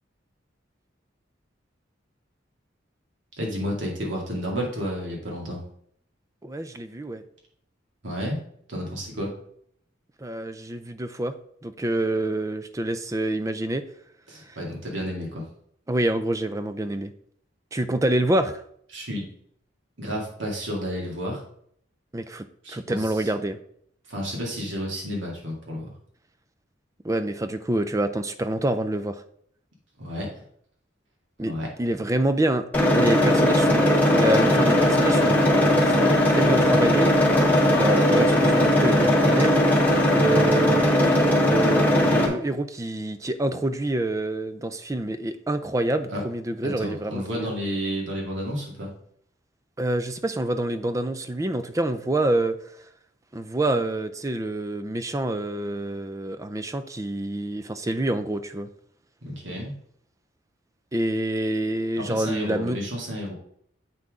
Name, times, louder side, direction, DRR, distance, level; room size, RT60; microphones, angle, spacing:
voice 1, 3.3-5.6 8.0-8.4 8.7-9.3 14.3-15.4 18.9-19.3 20.0-21.4 22.6-23.3 24.1-25.9 30.0-30.3 31.4-31.7 46.1-46.2 46.6-48.9 59.2-59.8 61.9-63.3, equal, 75° right, -2 dB, 2.4 m, -31 dB
voice 2, 6.4-7.2 10.2-11.4 11.6-13.9 14.5-14.6 15.9-17.1 17.7-18.6 22.1-23.6 27.0-29.2 31.4-32.7 33.0-37.1 37.7-39.6 40.1-40.9 41.4-47.5 49.8-52.6 53.3-58.7 60.9-62.8, right 1 dB, 15° right, 11 dB, 0.4 m, -27 dB
sound 1, 32.7-42.3, equal, 10° left, 1.2 m, -19 dB
sound 2, 34.0-40.5, left 3 dB, 70° left, 0.8 m, -32 dB
7.6 x 5.8 x 3.7 m, 0.66 s
head